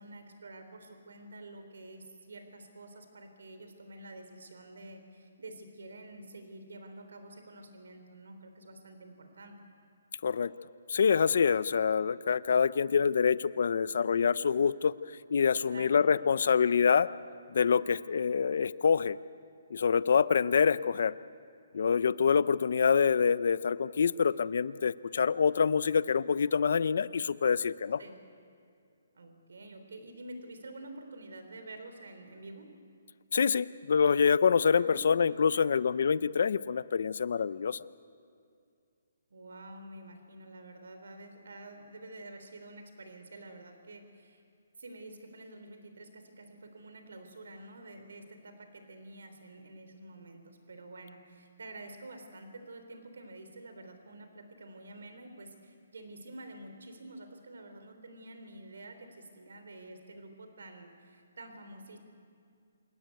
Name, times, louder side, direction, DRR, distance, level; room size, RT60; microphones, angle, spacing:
voice 1, 0.0-9.6 15.7-16.0 28.0-28.1 29.1-32.7 34.7-35.8 39.3-44.4 44.8-62.0, right 2 dB, 85° right, 7 dB, 3.4 m, -48 dB
voice 2, 10.2-10.5 10.9-14.9 15.3-17.1 17.5-19.2 19.7-21.1 21.7-28.0 33.3-37.8, left 6 dB, 60° left, 17 dB, 0.6 m, -26 dB
27.5 x 14.0 x 9.5 m, 2.4 s
hypercardioid pair, 165°, 0 cm